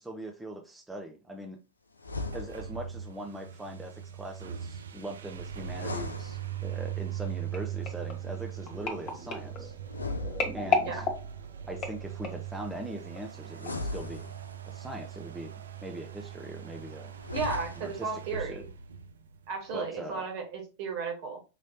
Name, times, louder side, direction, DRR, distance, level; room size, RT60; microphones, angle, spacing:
voice 1, 0.0-1.6 2.3-9.7 10.5-11.0 11.7-14.3 14.7-15.5 15.8-17.1 17.8-18.6 19.7-20.2, right 1 dB, 5° right, 1 dB, 0.7 m, -41 dB
Magic Whoosh ( Air Fire Earth ), 2.0-2.9 5.6-7.0 9.8-11.0 13.5-14.8 17.1-18.1, left 2 dB, 80° left, 0.5 m, -38 dB
sound 1, 2.2-19.7, right 10 dB, 65° right, 0.4 m, -40 dB
sound 2, 7.5-12.6 13.2-13.4 13.7-13.8, left 5 dB, 30° left, 1.4 m, -34 dB
voice 2, 17.3-18.7 19.5-21.4, right 4 dB, 45° right, 3 dB, 1.7 m, -34 dB
5.3 x 3.1 x 2.8 m, 0.30 s
figure-of-eight pair, 90°, 0 cm